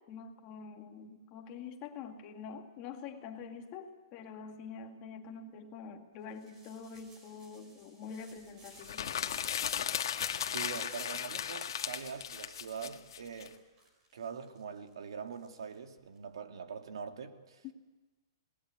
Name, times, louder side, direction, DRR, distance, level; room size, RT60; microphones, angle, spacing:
voice 1, 0.1-9.3 17.6-17.7, left 6 dB, 25° left, 4 dB, 2.0 m, -46 dB
sound 1, 6.3-16.2, right 1 dB, 20° right, 5.1 m, -59 dB
sound 2, 8.8-13.5, left 9 dB, 65° left, 1.7 m, -36 dB
voice 2, 10.5-13.6 14.1-17.6, right 6 dB, 85° right, 6 dB, 2.6 m, -43 dB
28.0 x 19.5 x 9.4 m, 1.3 s
hypercardioid pair, 175°, 3 cm